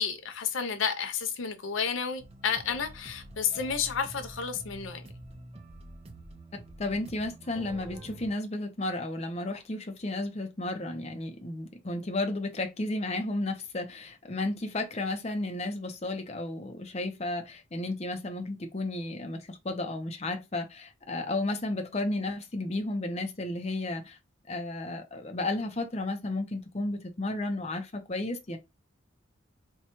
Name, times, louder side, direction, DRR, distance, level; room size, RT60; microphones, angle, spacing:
voice 1, 0.0-5.0, left 6 dB, 75° left, 0.5 m, -31 dB
sound 1, 2.2-8.3, right 1 dB, 30° right, 0.6 m, -47 dB
voice 2, 6.8-24.2 24.5-28.6, left 2 dB, 30° left, 0.6 m, -33 dB
4.3 x 2.3 x 2.9 m
head